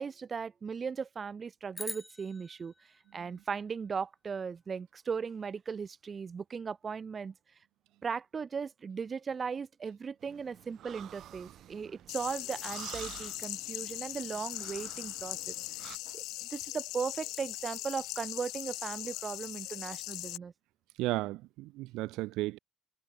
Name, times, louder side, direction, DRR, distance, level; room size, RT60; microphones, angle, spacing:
voice 1, 0.0-2.7 3.1-7.3 8.0-15.5 16.1-16.2 16.5-20.5, right 6 dB, 25° right, 2.1 m, -37 dB
sound 1, 1.7-4.2, left 1 dB, 5° left, 1.9 m, -45 dB
sound 2, 10.2-16.0, right 12 dB, 50° right, 6.8 m, -50 dB
sound 3, 12.1-20.4, left 19 dB, 75° left, 2.3 m, -40 dB
voice 2, 21.0-22.6, right 19 dB, 75° right, 0.4 m, -34 dB
cardioid pair, 170°, 0 cm